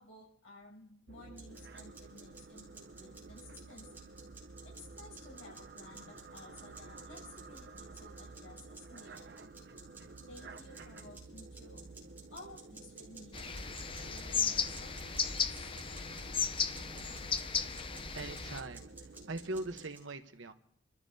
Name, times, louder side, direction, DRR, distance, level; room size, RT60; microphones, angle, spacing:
voice 1, 0.0-4.0 4.6-9.4 10.3-11.8 12.3-13.4 13.9-15.7, left 2 dB, 80° left, -3 dB, 7.3 m, -55 dB
sound 1, 1.1-19.9, right 3 dB, 55° right, 0.7 m, -52 dB
sound 2, 1.3-20.0, right 4 dB, 10° right, 4.7 m, -55 dB
sound 3, 13.3-18.6, left 6 dB, 25° left, 0.6 m, -35 dB
voice 2, 18.1-20.5, right 2 dB, 70° right, 7 dB, 1.1 m, -41 dB
28.5 x 14.0 x 2.8 m, 0.68 s
head